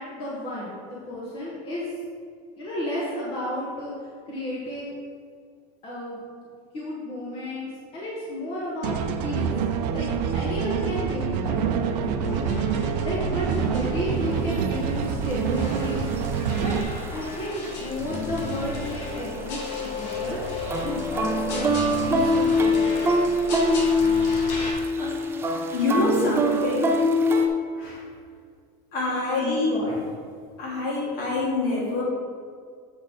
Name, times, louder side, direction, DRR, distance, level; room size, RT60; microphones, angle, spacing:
voice 1, 0.0-1.9 2.6-3.9 4.3-4.9 5.8-6.4 6.7-9.5 9.9-10.1 10.3-12.7 13.0-16.0 16.6-16.7 17.1-20.4 20.8-21.7 22.0-23.1 29.3-29.9, left 1 dB, 25° left, -6 dB, 1.3 m, -32 dB
sound 1, 8.8-16.8, right 7 dB, 85° right, 0.7 m, -26 dB
sound 2, 12.2-24.7, left 3 dB, 85° left, 1.8 m, -34 dB
sound 3, 14.5-14.6 15.3-15.4 16.2-17.4 17.6-17.9 18.2-19.8 20.1-27.5, left 1 dB, 10° right, 0.3 m, -23 dB
voice 2, 25.0-25.3 25.7-27.1 27.7-28.0 28.9-29.7 30.6-32.0, left 2 dB, 45° left, -3 dB, 2.0 m, -26 dB
7.7 x 4.4 x 5.1 m, 2.1 s
supercardioid pair, 165°, 21 cm